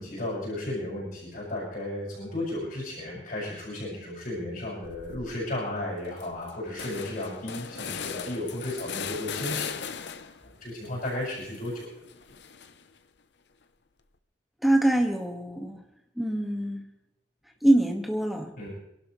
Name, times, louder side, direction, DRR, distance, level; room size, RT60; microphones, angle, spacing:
voice 1, 0.0-9.7 10.1-11.9 18.6-18.7, left 1 dB, 50° left, -6 dB, 6.5 m, -34 dB
sound 1, 4.8-5.3 5.7-5.8 6.0-10.5 10.8-13.0, left 7 dB, 70° left, 0.8 m, -38 dB
voice 2, 14.6-15.8 16.2-16.8 17.6-18.5, right 1 dB, ahead, 2 dB, 1.8 m, -24 dB
27.0 x 12.0 x 3.2 m, 0.84 s
head